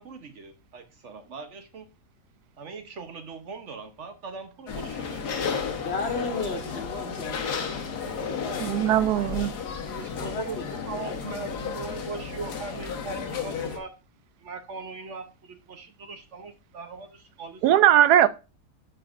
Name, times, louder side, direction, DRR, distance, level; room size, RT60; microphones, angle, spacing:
voice 1, 0.0-1.8 2.6-5.6 9.9-13.9 14.4-17.6 18.2-18.3, right 4 dB, 55° right, 1.1 m, -40 dB
sound 1, 4.7-13.8, left 6 dB, 85° left, 1.7 m, -33 dB
voice 2, 5.5-8.8 9.4-10.8, left 3 dB, 45° left, 1.4 m, -36 dB
voice 3, 8.6-9.5 17.6-18.3, right 11 dB, 85° right, 1.1 m, -19 dB
13.5 x 4.6 x 2.4 m
omnidirectional pair, 1.7 m